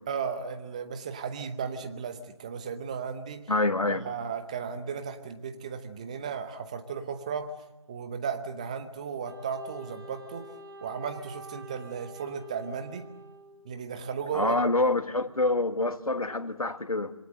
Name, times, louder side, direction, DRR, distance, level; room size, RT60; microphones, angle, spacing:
voice 1, 0.1-3.5 3.9-10.5 10.8-13.1 13.6-14.6, right 6 dB, 10° right, 0.9 m, -35 dB
voice 2, 3.5-4.0 14.3-17.1, left 2 dB, 80° left, 2.0 m, -26 dB
Wind instrument woodwind instrument, 9.2-13.8, right 1 dB, 40° right, 4.5 m, -47 dB
27.0 x 23.0 x 7.8 m
figure-of-eight pair, 160°, 18 cm